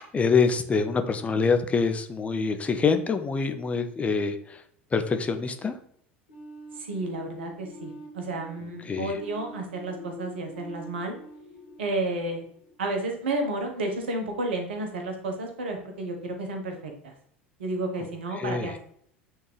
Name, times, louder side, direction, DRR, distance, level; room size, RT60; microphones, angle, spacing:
voice 1, 0.1-4.6 4.9-5.7 8.8-9.2 18.4-18.8, left 5 dB, 20° left, 8 dB, 0.6 m, -25 dB
sound 1, 6.3-13.0, left 1 dB, 70° left, 2.4 m, -45 dB
voice 2, 6.8-11.1 11.8-12.5 12.8-17.1 17.6-18.8, right 2 dB, 70° right, 4 dB, 1.2 m, -31 dB
8.4 x 3.6 x 3.2 m, 0.66 s
figure-of-eight pair, 75°, 6 cm